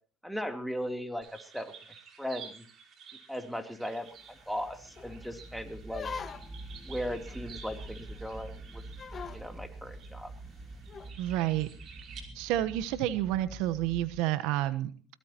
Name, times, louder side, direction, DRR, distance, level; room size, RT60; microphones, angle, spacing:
voice 1, 0.2-1.7 2.2-2.6 3.3-4.1 4.5-6.1 6.8-8.8 9.3-10.3, equal, ahead, 6 dB, 3.2 m, -37 dB
sound 1, 1.2-12.2, right 6 dB, 50° right, 5.2 m, -52 dB
sound 2, 3.8-3.9 4.4-4.5 5.0-5.3 5.9-6.7 7.3-7.4 7.8-7.9 8.1-8.3 9.0-9.4 10.9-11.1, left 6 dB, 35° left, 1.3 m, -41 dB
sound 3, 4.3-14.2, right 2 dB, 20° right, 1.7 m, -46 dB
voice 2, 11.2-11.7 12.3-14.9, right 14 dB, 70° right, 14 dB, 1.1 m, -29 dB
22.0 x 20.5 x 3.0 m, 0.40 s
hypercardioid pair, 80°, 0 cm